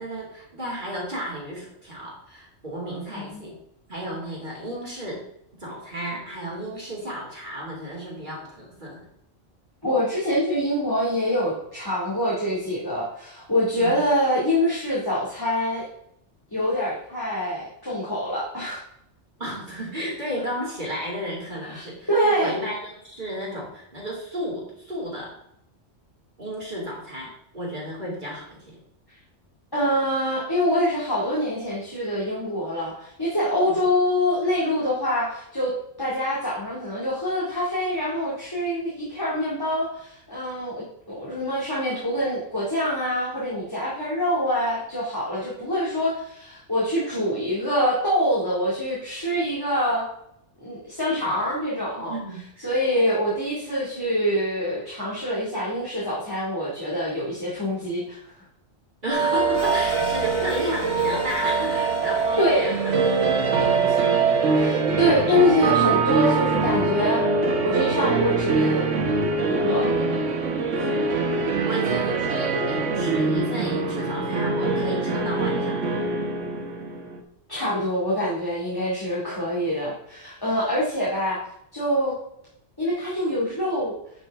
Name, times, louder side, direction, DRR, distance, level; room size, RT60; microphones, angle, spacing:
voice 1, 0.0-3.6 3.9-5.2 5.6-9.1 13.8-14.0 19.4-25.4 26.4-28.8 33.6-33.8 51.2-51.4 52.0-52.7 59.0-63.0 63.3-64.2 70.7-71.1 71.6-75.8, equal, 40° right, -5 dB, 2.9 m, -33 dB
voice 2, 9.8-15.9 16.5-18.8 21.7-21.8 22.1-22.5 29.7-35.7 36.0-50.0 50.6-52.2 52.6-58.2 62.4-62.7 64.5-67.2 67.6-68.9 69.5-69.9 77.5-81.4 81.7-82.2 82.8-83.9, equal, 20° left, -7 dB, 2.5 m, -25 dB
sound 1, 59.1-77.2, right 4 dB, 80° right, 1.4 m, -23 dB
sound 2, 59.5-65.8, left 6 dB, 70° left, 1.3 m, -39 dB
10.0 x 6.4 x 3.6 m, 0.75 s
omnidirectional pair, 1.3 m